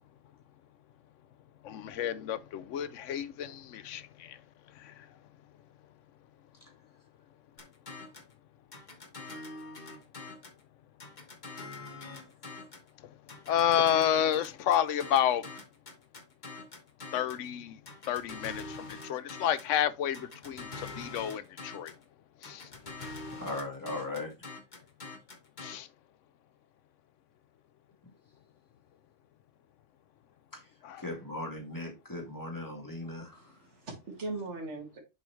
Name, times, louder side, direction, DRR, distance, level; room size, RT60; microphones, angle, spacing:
voice 1, 1.6-4.4 4.7-5.1 13.0-13.1 13.5-15.5 17.1-17.8 18.1-21.9 22.4-22.7 25.6-25.9 30.8-31.0, left 10 dB, 80° left, 0.9 m, -30 dB
sound 1, 7.6-8.3 8.7-10.6 11.0-12.9 13.3-17.5 17.9-19.8 20.1-22.0 22.4-25.7, left 3 dB, 40° left, 1.3 m, -44 dB
voice 2, 23.4-24.3 30.5-30.7 31.0-33.6, left 2 dB, 15° left, 2.2 m, -38 dB
voice 3, 33.2-35.0, right 3 dB, 65° right, 2.1 m, -40 dB
6.9 x 4.8 x 3.1 m
omnidirectional pair, 1.3 m